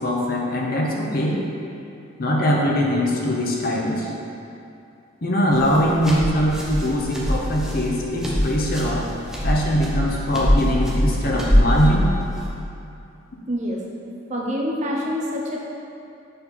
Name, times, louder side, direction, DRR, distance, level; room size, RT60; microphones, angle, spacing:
voice 1, 0.0-1.4 2.2-4.1 5.2-9.1 9.4-12.0, equal, 45° left, -2 dB, 0.8 m, -22 dB
sound 1, 5.5-12.5, equal, 5° right, 0.7 m, -23 dB
voice 2, 13.5-13.8 14.3-15.6, equal, 35° right, -2 dB, 0.7 m, -26 dB
6.5 x 4.2 x 4.2 m, 2.6 s
head